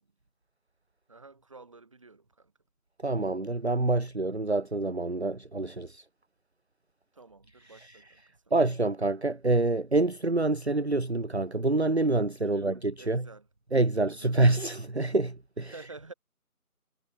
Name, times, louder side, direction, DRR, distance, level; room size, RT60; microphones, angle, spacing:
voice 1, 1.1-2.5 7.1-8.2 12.4-13.5 14.0-14.4 15.7-16.1, right 3 dB, 20° right, 4.2 m, -50 dB
voice 2, 3.0-6.0 7.7-8.0 8.5-13.3 13.7-15.7, right 2 dB, 45° right, 1.1 m, -27 dB
figure-of-eight pair, 170°, 45 cm